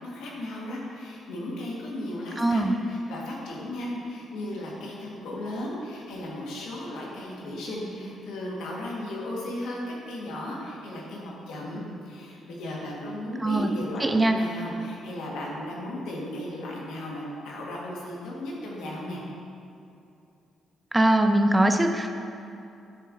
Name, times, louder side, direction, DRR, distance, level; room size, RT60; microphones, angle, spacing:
voice 1, 0.0-19.2, left 1 dB, 85° left, -4 dB, 1.4 m, -35 dB
voice 2, 2.4-2.7 13.4-13.7 14.0-14.4 20.9-22.2, right 1 dB, 15° right, 6 dB, 0.4 m, -21 dB
8.9 x 6.0 x 2.6 m, 2.7 s
cardioid pair, 90°, 0 cm